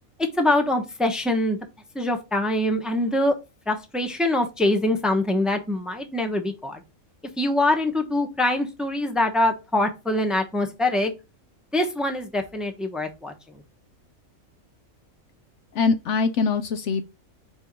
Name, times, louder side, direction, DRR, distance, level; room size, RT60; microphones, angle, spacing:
voice 1, 0.4-1.6 1.9-3.3 3.7-6.8 7.4-11.1 11.7-13.3, left 1 dB, ahead, 0.9 m, -24 dB
voice 2, 15.7-17.0, left 4 dB, 65° left, 0.9 m, -23 dB
4.5 x 4.5 x 5.2 m
omnidirectional pair, 1.4 m